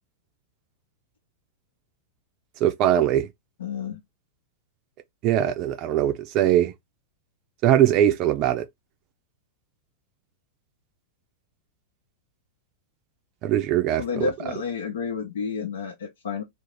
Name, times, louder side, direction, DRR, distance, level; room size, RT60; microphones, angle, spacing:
voice 1, 2.6-3.3 5.2-6.7 7.6-8.6 13.4-14.3, right 11 dB, 45° right, 0.4 m, -21 dB
voice 2, 3.6-4.0 14.0-16.4, left 6 dB, 75° left, 0.7 m, -30 dB
2.5 x 2.0 x 3.1 m
hypercardioid pair, 100°, 0 cm